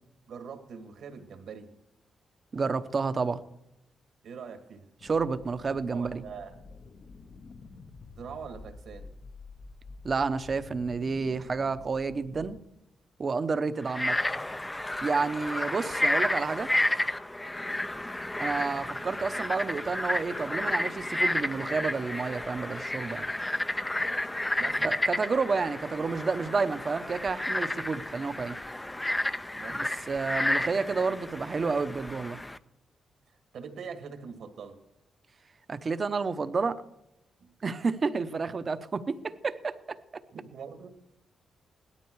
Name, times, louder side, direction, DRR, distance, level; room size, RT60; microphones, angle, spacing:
voice 1, 0.3-1.7 4.2-4.9 5.9-6.5 8.2-9.1 15.1-15.4 24.6-25.0 29.6-30.0 33.5-34.8 37.4-37.5 40.3-40.9, right 6 dB, 75° right, 5 dB, 2.0 m, -43 dB
voice 2, 2.5-3.4 5.0-6.2 10.0-12.6 13.2-14.2 15.0-16.7 18.4-23.2 24.8-28.5 29.7-32.4 35.7-36.8 37.6-40.0, right 4 dB, 40° right, 11 dB, 0.9 m, -30 dB
sound 1, 5.0-12.6, left 4 dB, 50° left, 1.0 m, -49 dB
Frog, 13.8-32.6, left 1 dB, 10° left, 0.6 m, -31 dB
17.5 x 13.0 x 4.7 m, 0.85 s
cardioid pair, 100°, 0 cm